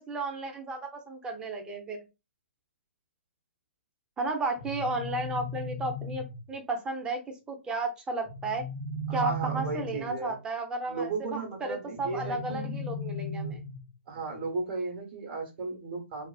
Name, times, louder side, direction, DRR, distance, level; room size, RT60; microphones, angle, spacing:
voice 1, 0.0-2.0 4.2-7.2 7.5-8.7 9.1-13.6, right 2 dB, 10° right, 3 dB, 0.5 m, -33 dB
sound 1, 4.6-6.5 8.3-10.2 12.0-13.9, equal, 55° left, 0.6 m, -36 dB
voice 2, 9.1-10.3 10.9-12.8 14.1-16.3, right 4 dB, 50° right, 2 dB, 1.0 m, -35 dB
2.4 x 2.3 x 2.3 m, 0.26 s
hypercardioid pair, 135°, 7 cm